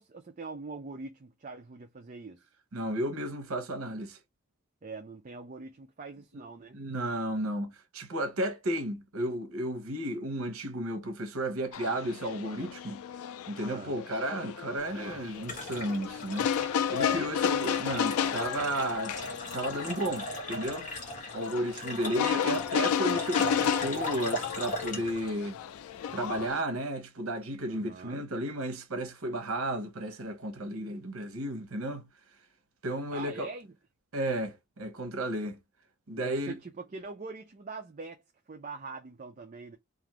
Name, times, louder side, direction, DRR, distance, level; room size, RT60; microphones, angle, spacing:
voice 1, 0.0-2.4 4.8-6.8 13.6-13.9 17.0-18.0 27.7-28.2 33.1-33.7 36.2-39.8, right 4 dB, 35° right, 0.4 m, -43 dB
voice 2, 2.7-4.2 6.7-13.0 13.5-16.5 16.9-19.1 19.5-20.9 21.3-25.6 26.1-32.1 32.8-33.5 34.1-35.6 36.1-36.5, right 1 dB, 85° right, 0.8 m, -33 dB
sound 1, 11.7-26.6, left 8 dB, 85° left, 0.3 m, -33 dB
sound 2, 14.8-26.5, left 1 dB, 35° left, 1.0 m, -39 dB
2.5 x 2.4 x 3.0 m
head